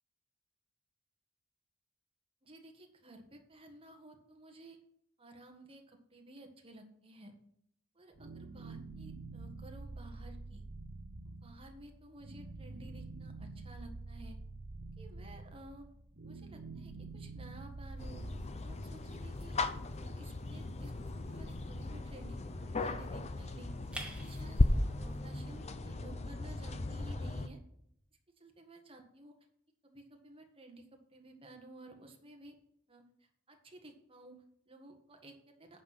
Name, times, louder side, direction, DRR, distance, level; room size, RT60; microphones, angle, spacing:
voice 1, 2.4-4.8 5.2-7.3 7.9-10.6 11.2-14.4 15.0-15.8 16.2-18.3 18.6-19.6 19.9-22.4 22.6-23.7 24.1-24.6 25.0-27.6 28.4-29.3 29.8-32.6 32.9-35.8, right 2 dB, 25° right, 4 dB, 1.5 m, -54 dB
sound 1, 8.1-18.5, right 3 dB, 55° right, 0.9 m, -47 dB
sound 2, 18.0-27.5, left 2 dB, 30° left, 0.6 m, -36 dB
sound 3, 18.0-25.7, right 2 dB, 5° right, 1.1 m, -54 dB
9.1 x 5.8 x 6.1 m, 0.72 s
head